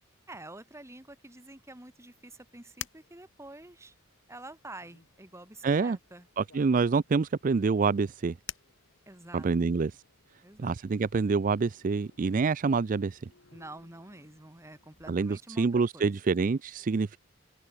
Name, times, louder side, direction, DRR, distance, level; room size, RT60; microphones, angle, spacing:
voice 1, 0.3-3.9 4.3-6.3 9.1-9.5 10.4-10.7 13.5-16.1, right 2 dB, 15° right, 2.0 m, -48 dB
pig head lamp post, 2.2-15.4, left 10 dB, 70° left, 1.6 m, -52 dB
voice 2, 5.6-6.0 6.4-8.4 9.3-10.0 10.6-13.3 15.1-17.2, right 4 dB, 45° right, 0.4 m, -27 dB
head